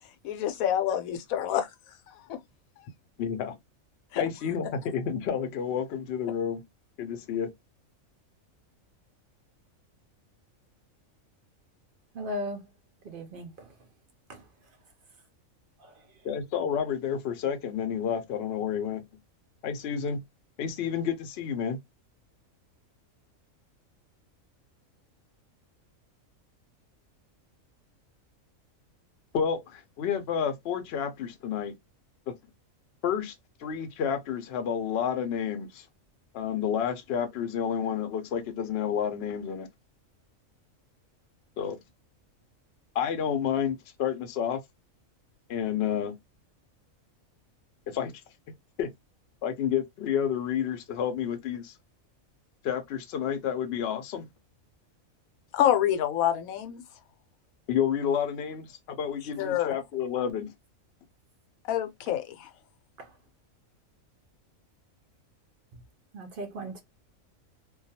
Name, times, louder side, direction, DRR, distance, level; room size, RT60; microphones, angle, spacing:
voice 1, 0.2-1.7 2.1-2.4 2.8-2.9 4.1-4.3 55.5-56.8 59.4-59.8 61.7-62.5, left 11 dB, 85° left, 1.0 m, -27 dB
voice 2, 3.2-3.6 4.2-6.6 7.0-7.5 16.2-19.0 19.6-20.2 20.6-21.8 29.3-31.7 33.0-33.3 33.6-35.9 36.3-39.7 41.6-41.8 42.9-44.6 45.5-46.1 47.9-48.1 48.8-48.9 49.4-51.7 52.6-54.3 57.7-60.5, left 8 dB, 65° left, 0.7 m, -30 dB
voice 3, 12.2-12.6 13.1-13.5 66.1-66.8, equal, 65° right, 0.5 m, -35 dB
2.3 x 2.2 x 2.7 m
omnidirectional pair, 1.4 m